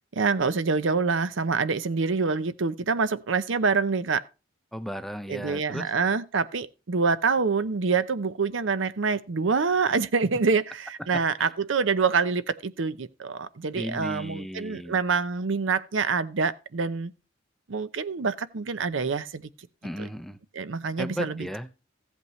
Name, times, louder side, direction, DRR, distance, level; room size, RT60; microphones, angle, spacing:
voice 1, 0.1-4.2 5.3-17.1 17.7-19.5 20.5-21.5, right 4 dB, 75° right, 0.6 m, -26 dB
voice 2, 4.7-5.9 11.4-11.5 13.8-15.0 19.8-20.4 21.0-21.7, equal, ahead, 0.5 m, -35 dB
15.0 x 8.3 x 3.1 m
head